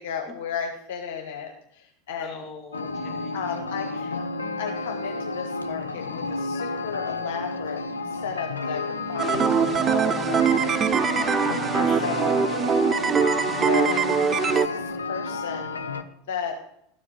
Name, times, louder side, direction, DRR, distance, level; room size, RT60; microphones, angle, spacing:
voice 1, 0.0-2.3 3.3-4.2 4.6-11.1 11.7-12.6 13.6-14.0 14.3-15.8 16.3-16.5, left 6 dB, 60° left, 4 dB, 1.0 m, -34 dB
voice 2, 2.2-4.2 11.2-12.2 13.5-13.9, left 5 dB, 25° left, 3 dB, 2.2 m, -43 dB
sound 1, 2.7-16.0, left 3 dB, 75° left, 0.5 m, -31 dB
sound 2, 9.2-14.7, right 6 dB, 25° right, 0.4 m, -22 dB
13.0 x 4.9 x 7.4 m, 0.75 s
figure-of-eight pair, 80°, 0 cm